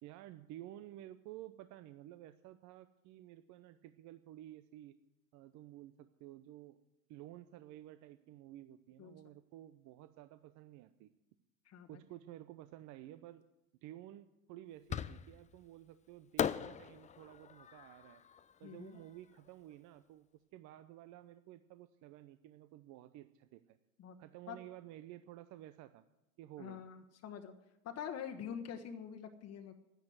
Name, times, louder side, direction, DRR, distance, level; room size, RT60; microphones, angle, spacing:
voice 1, 0.0-5.0 5.3-6.8 7.1-11.1 11.9-13.4 13.8-18.2 18.6-20.3 20.5-23.8 24.2-26.1 26.4-26.8, right 14 dB, 50° right, 11 dB, 0.8 m, -53 dB
voice 2, 11.6-12.0 18.6-19.0 24.0-24.2 24.5-24.6 26.6-27.5 27.8-29.8, left 8 dB, 40° left, 4 dB, 1.3 m, -45 dB
Fireworks, 14.9-15.6 16.4-19.5, left 8 dB, 20° left, 0.5 m, -40 dB
10.5 x 10.5 x 9.4 m, 0.90 s
hypercardioid pair, 80°, 39 cm